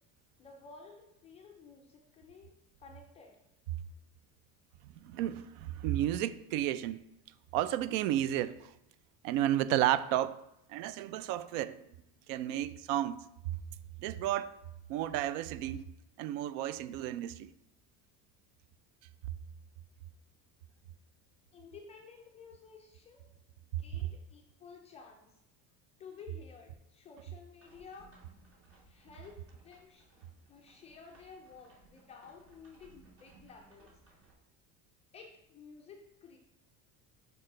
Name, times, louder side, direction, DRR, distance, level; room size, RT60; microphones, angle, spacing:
voice 1, 0.4-2.5 2.8-3.4 21.5-23.3 23.7-25.3 26.0-28.1 28.9-30.1 30.5-34.2 35.1-36.4, left 5 dB, 20° left, 0.3 m, -53 dB
voice 2, 4.9-7.0 7.5-8.7 9.2-10.4 10.7-11.8 12.3-13.2 14.0-14.6 14.9-15.8 16.2-17.5, right 12 dB, 70° right, 0.5 m, -32 dB
sound 1, 27.6-34.3, right 3 dB, 50° right, 2.6 m, -62 dB
5.4 x 4.5 x 5.0 m
cardioid pair, 180°, 39 cm